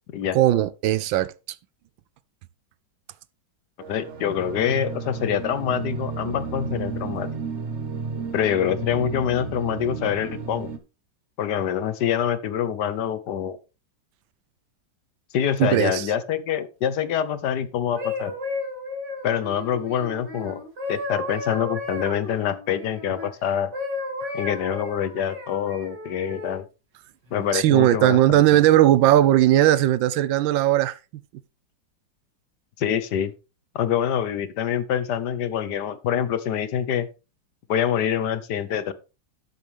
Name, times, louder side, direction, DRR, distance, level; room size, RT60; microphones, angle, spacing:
voice 1, 0.3-1.3 15.6-16.1 24.2-24.3 27.5-31.0, right 13 dB, 80° right, 1.4 m, -18 dB
sound 1, 3.8-10.8, right 4 dB, 45° right, 1.2 m, -33 dB
voice 2, 3.9-7.3 8.3-10.7 11.4-13.6 15.3-18.3 19.2-20.6 20.9-23.7 24.3-26.6 27.3-28.4 32.8-33.3 33.7-37.1 37.7-38.9, left 9 dB, 65° left, 1.3 m, -25 dB
sound 2, 17.7-23.3 23.7-26.6 27.2-27.5, left 2 dB, 65° right, 3.2 m, -33 dB
11.5 x 8.0 x 3.3 m
omnidirectional pair, 2.1 m